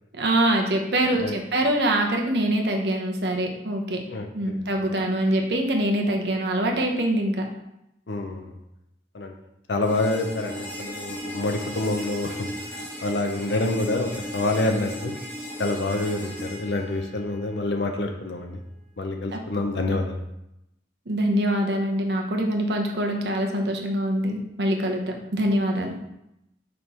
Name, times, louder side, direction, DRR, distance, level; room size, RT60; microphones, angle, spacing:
voice 1, 0.1-4.0 4.3-7.4 19.3-19.4 19.8-20.0 21.1-25.0 25.3-26.0, right 1 dB, 70° right, 2 dB, 1.0 m, -24 dB
voice 2, 4.1-4.6 8.1-8.5 9.1-9.3 9.7-12.4 13.0-15.1 15.6-18.6 19.0-20.2, left 2 dB, 75° left, 4 dB, 0.6 m, -27 dB
sound 1, 9.8-17.8, equal, 15° left, 1.9 m, -36 dB
5.3 x 4.4 x 4.3 m, 0.85 s
head